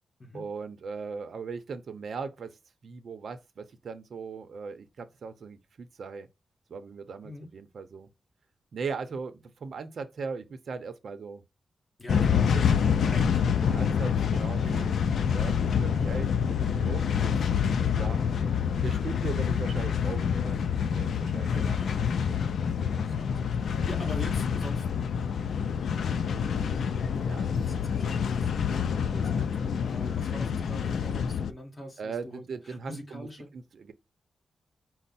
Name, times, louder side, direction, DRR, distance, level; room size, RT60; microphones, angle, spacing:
voice 1, 0.3-6.3 6.7-8.1 8.7-11.4 12.5-17.4 17.9-18.2 18.7-22.4 27.2-27.5 32.0-33.3 33.5-33.9, right 5 dB, 60° right, 0.7 m, -39 dB
voice 2, 12.0-12.5 13.1-13.9 21.5-21.9 23.0-24.9 27.4-33.5, left 1 dB, 30° left, 1.7 m, -43 dB
sound 1, 12.1-31.5, left 7 dB, 85° left, 0.4 m, -27 dB
5.3 x 2.1 x 4.1 m
wide cardioid pair, 165°, 0 cm